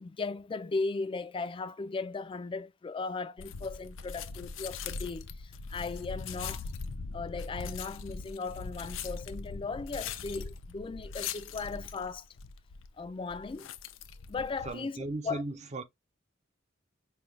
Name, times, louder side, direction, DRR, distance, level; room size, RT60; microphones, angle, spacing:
voice 1, 0.0-6.7 7.1-12.2 13.0-13.7 14.3-15.4, left 4 dB, 25° left, 0.3 m, -37 dB
sound 1, 3.4-14.8, left 5 dB, 90° left, 0.5 m, -41 dB
voice 2, 14.6-15.8, right 2 dB, 35° right, 0.6 m, -37 dB
5.2 x 2.2 x 3.1 m
head